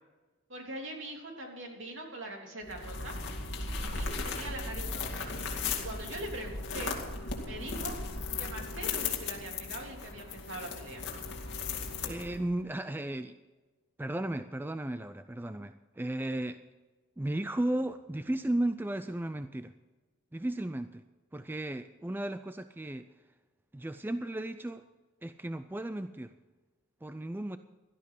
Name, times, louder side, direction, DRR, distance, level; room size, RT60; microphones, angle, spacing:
voice 1, 0.5-3.2 3.9-7.0 7.4-8.0 8.4-11.0, right 1 dB, 60° right, 1 dB, 3.3 m, -42 dB
sound 1, 2.7-12.5, left 4 dB, 55° left, 2.4 m, -36 dB
voice 2, 12.0-13.4 14.0-16.6 17.2-19.7 20.3-21.0 21.3-23.1 23.7-24.9 25.2-26.3 27.0-27.6, right 1 dB, 10° right, 10 dB, 0.4 m, -35 dB
16.5 x 12.5 x 4.8 m, 1.3 s
head